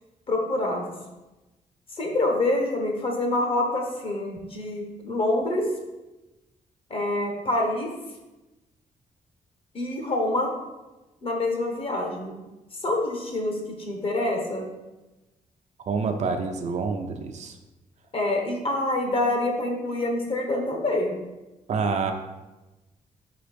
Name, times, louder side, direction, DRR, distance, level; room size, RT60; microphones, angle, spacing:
voice 1, 0.3-0.9 2.0-5.7 6.9-7.9 9.7-10.5 11.2-12.3 12.8-14.6 18.1-21.2, left 2 dB, 40° left, 1 dB, 1.1 m, -26 dB
voice 2, 15.9-17.5 21.7-22.1, right 5 dB, 55° right, 4 dB, 0.6 m, -27 dB
5.4 x 3.9 x 5.1 m, 1.1 s
wide cardioid pair, 175°, 14 cm